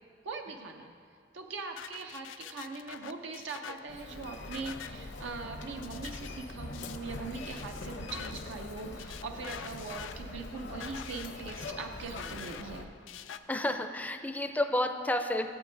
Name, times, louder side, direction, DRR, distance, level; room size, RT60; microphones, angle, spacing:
voice 1, 0.2-0.9 1.3-12.9, right 4 dB, 80° right, 4 dB, 0.5 m, -41 dB
sound 1, 1.8-13.4, left 8 dB, 90° left, 0.4 m, -47 dB
Human voice, 3.9-12.8, left 2 dB, 65° left, 0.7 m, -43 dB
voice 2, 13.5-15.5, left 1 dB, 10° left, 7 dB, 0.4 m, -30 dB
16.0 x 8.3 x 2.6 m, 2.2 s
head